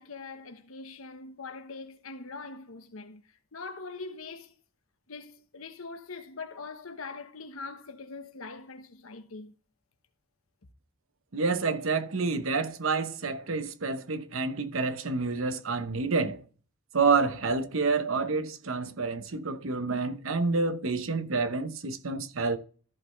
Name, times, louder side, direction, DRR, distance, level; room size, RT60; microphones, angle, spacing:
voice 1, 0.0-4.5 5.1-9.5, left 4 dB, 85° left, 1.1 m, -42 dB
voice 2, 11.3-16.4 16.9-22.6, right 4 dB, 75° right, 0.9 m, -28 dB
14.0 x 5.5 x 3.2 m
head